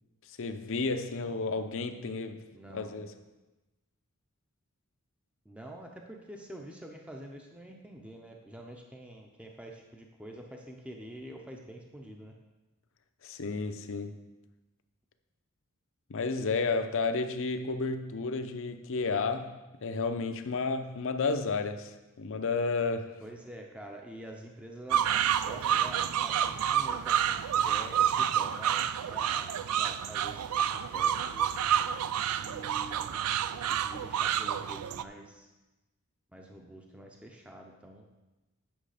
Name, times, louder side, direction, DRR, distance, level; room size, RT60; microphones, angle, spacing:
voice 1, 0.3-2.4 2.7-3.1 13.2-14.2 16.1-23.2, left 4 dB, 60° left, 0.7 m, -32 dB
voice 2, 2.5-3.0 5.5-12.3 23.2-31.5 32.4-33.2 33.5-35.5 36.3-38.1, right 1 dB, 5° right, 0.6 m, -47 dB
sound 1, 24.9-35.0, right 9 dB, 80° right, 0.4 m, -29 dB
8.9 x 6.0 x 5.0 m
head